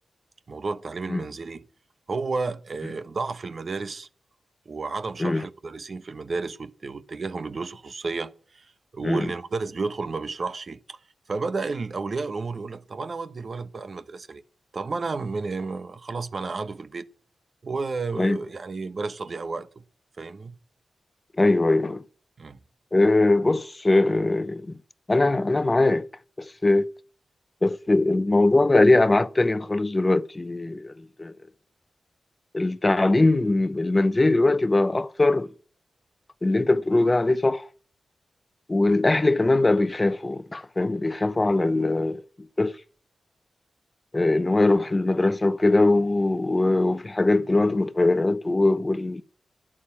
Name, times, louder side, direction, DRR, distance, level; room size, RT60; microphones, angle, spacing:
voice 1, 0.5-1.6 2.1-4.1 4.7-8.7 8.9-11.0 11.3-14.4 14.7-17.0 17.6-19.8 20.2-20.5 22.4-22.6, right 4 dB, 55° right, 1.0 m, -32 dB
voice 2, 21.4-22.0 22.9-24.7 25.1-26.1 26.4-26.9 27.6-30.9 31.2-31.3 32.5-35.5 36.4-37.7 38.7-42.2 42.6-42.8 44.1-49.2, left 2 dB, 30° left, 0.8 m, -21 dB
11.5 x 8.8 x 8.7 m
supercardioid pair, 45°, 0 cm